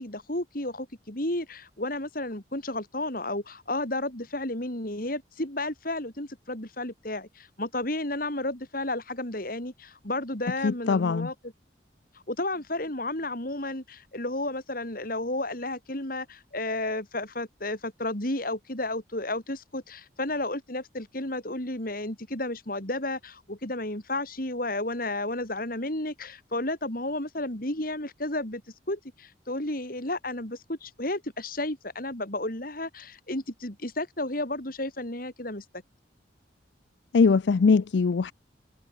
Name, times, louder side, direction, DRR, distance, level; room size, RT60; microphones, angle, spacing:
voice 1, 0.0-11.5 12.3-28.6 28.9-35.6, left 2 dB, 50° left, 4.0 m, -32 dB
voice 2, 10.6-11.3 37.1-38.3, left 4 dB, 65° left, 0.4 m, -21 dB
head